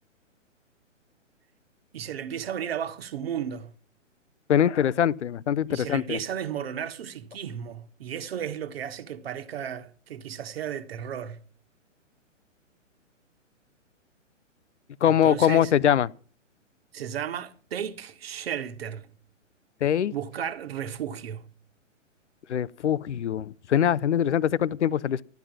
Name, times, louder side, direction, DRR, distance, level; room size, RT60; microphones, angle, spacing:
voice 1, 1.9-3.7 5.7-11.4 15.0-15.7 16.9-19.1 20.1-21.5, right 9 dB, 50° right, 1.5 m, -34 dB
voice 2, 4.5-6.2 15.0-16.1 19.8-20.1 22.5-25.2, left 9 dB, 65° left, 0.6 m, -23 dB
13.0 x 10.5 x 6.2 m
figure-of-eight pair, 125°, 38 cm